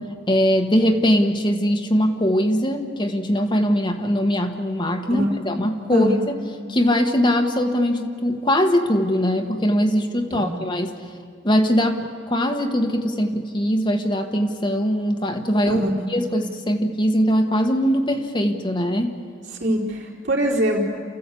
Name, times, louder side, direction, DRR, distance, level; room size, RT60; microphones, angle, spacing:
voice 1, 0.3-6.3 6.7-10.9 11.4-15.8 16.1-19.2, equal, 25° left, 4 dB, 1.3 m, -21 dB
voice 2, 5.1-5.4 5.9-6.2 10.3-10.6 15.7-16.1 19.5-20.8, equal, 75° right, -2 dB, 4.1 m, -23 dB
29.0 x 14.5 x 8.4 m, 2.1 s
head